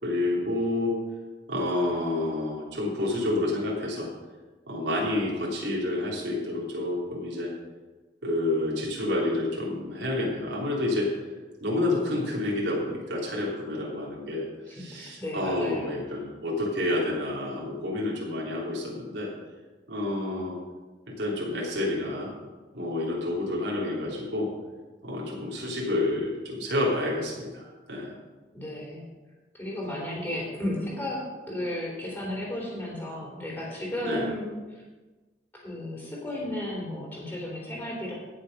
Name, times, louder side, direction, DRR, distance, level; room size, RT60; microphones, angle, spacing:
voice 1, 0.0-0.9 1.5-4.1 4.7-7.5 8.2-11.1 11.6-19.3 19.9-20.5 21.1-22.3 22.7-24.5 25.0-28.1 34.0-34.3, left 1 dB, 75° right, -4 dB, 3.3 m, -29 dB
voice 2, 14.7-15.9 28.5-29.0 29.5-34.8 35.5-38.1, left 1 dB, 10° left, -4 dB, 3.6 m, -34 dB
16.5 x 6.8 x 5.4 m, 1.3 s
head